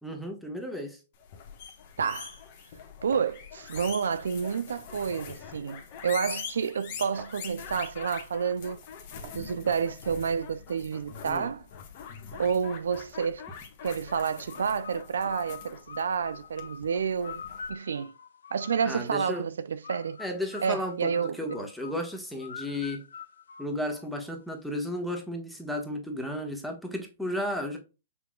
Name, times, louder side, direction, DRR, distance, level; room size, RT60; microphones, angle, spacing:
voice 1, 0.0-1.0 11.2-11.5 18.8-19.4 20.2-23.1 23.6-27.8, left 1 dB, ahead, 1.3 m, -34 dB
sound 1, 1.2-17.7, left 7 dB, 50° left, 1.2 m, -44 dB
voice 2, 2.0-2.4 3.0-8.8 9.3-11.6 12.3-13.4 13.8-17.4 17.7-18.1 18.5-20.2 20.6-21.4, right 6 dB, 80° right, 0.3 m, -29 dB
sound 2, 2.7-9.7, right 5 dB, 50° right, 1.5 m, -52 dB
sound 3, 14.4-19.2 19.8-24.3, left 7 dB, 80° left, 0.5 m, -45 dB
5.9 x 3.5 x 2.3 m
hypercardioid pair, 135°, 0 cm